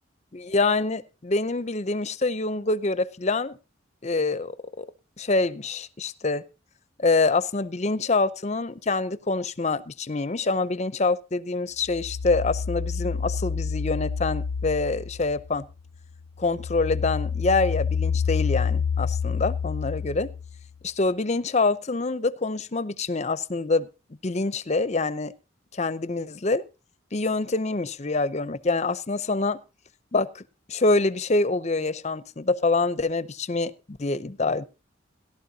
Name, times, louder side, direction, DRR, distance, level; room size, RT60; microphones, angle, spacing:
voice 1, 0.3-3.6 4.0-4.5 4.8-4.9 5.2-6.4 7.0-15.7 16.4-20.3 20.8-23.9 24.2-25.3 25.7-26.6 27.1-29.6 30.1-30.4 30.7-34.6, left 3 dB, 35° left, 0.7 m, -25 dB
sound 1, 11.9-15.7 16.1-20.7, left 6 dB, 70° left, 0.5 m, -28 dB
17.5 x 12.0 x 2.8 m
head